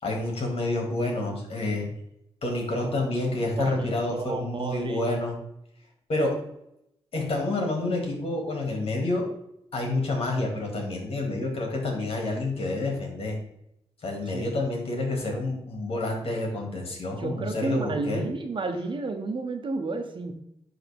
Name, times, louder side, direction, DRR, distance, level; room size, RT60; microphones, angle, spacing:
voice 1, 0.0-1.9 2.4-5.4 6.1-6.4 7.1-9.3 9.7-13.4 14.0-18.2, left 2 dB, 60° left, 0 dB, 2.6 m, -28 dB
voice 2, 3.6-5.0 14.3-14.5 17.2-20.3, right 3 dB, 50° right, 5 dB, 1.2 m, -31 dB
11.0 x 3.8 x 3.7 m, 0.79 s
cardioid pair, 60°, 11 cm